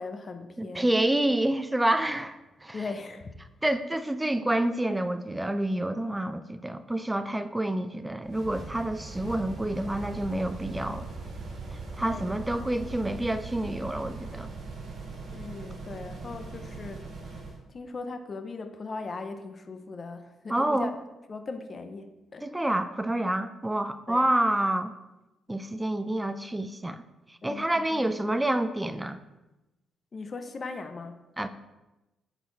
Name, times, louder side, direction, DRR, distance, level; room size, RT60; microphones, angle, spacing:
voice 1, 0.0-1.0 2.7-3.3 12.0-12.7 15.3-17.4 17.7-20.9 21.3-22.5 24.1-24.3 27.4-28.1 30.1-31.2, left 3 dB, 35° left, 8 dB, 0.6 m, -39 dB
voice 2, 0.6-2.8 3.6-11.1 12.0-14.5 20.5-20.9 22.4-24.9 25.5-27.0 27.4-29.2 31.4-31.5, right 1 dB, 10° right, 11 dB, 0.3 m, -28 dB
sound 1, 8.2-17.6, right 3 dB, 70° right, 2.0 m, -40 dB
8.7 x 4.0 x 4.1 m, 1.0 s
cardioid pair, 125°, 0 cm